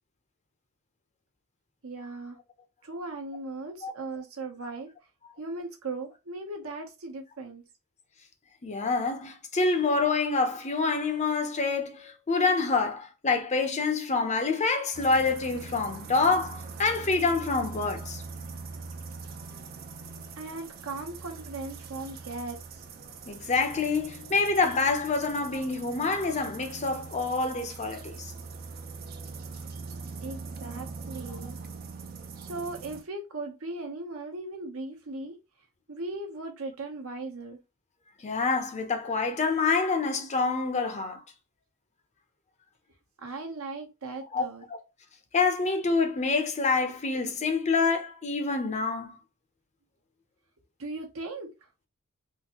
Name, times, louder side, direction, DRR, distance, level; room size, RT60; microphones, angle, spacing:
voice 1, 1.8-2.4 2.8-4.9 5.4-7.6 20.4-22.8 30.2-31.6 32.4-35.3 35.9-37.6 43.2-44.6 50.8-51.5, right 2 dB, 65° right, 0.9 m, -38 dB
voice 2, 8.6-18.2 23.3-28.3 38.2-41.2 44.3-44.8 45.3-49.2, left 4 dB, 30° left, 0.6 m, -27 dB
sound 1, 14.9-33.0, right 4 dB, 45° right, 0.5 m, -42 dB
3.7 x 2.6 x 2.9 m
head